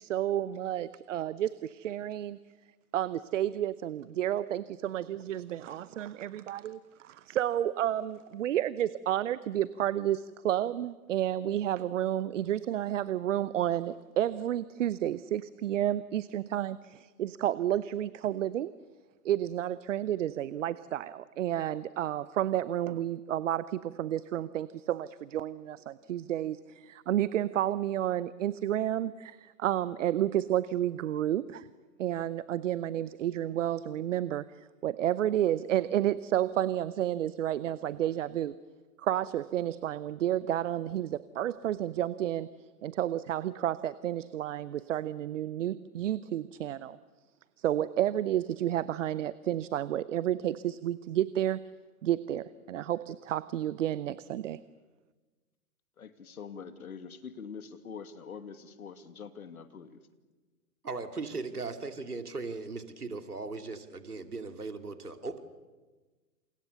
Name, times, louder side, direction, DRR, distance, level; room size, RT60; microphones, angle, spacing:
voice 1, 0.0-2.4 2.9-18.7 19.2-31.7 32.0-34.5 34.8-38.5 39.0-42.5 42.8-47.0 47.6-51.6 52.0-54.6, right 12 dB, 55° right, 17 dB, 0.9 m, -31 dB
voice 2, 56.0-60.0, left 6 dB, 70° left, 10 dB, 2.5 m, -44 dB
voice 3, 60.8-65.4, right 3 dB, 90° right, 8 dB, 2.6 m, -38 dB
28.5 x 28.0 x 6.9 m, 1.3 s
figure-of-eight pair, 115°, 44 cm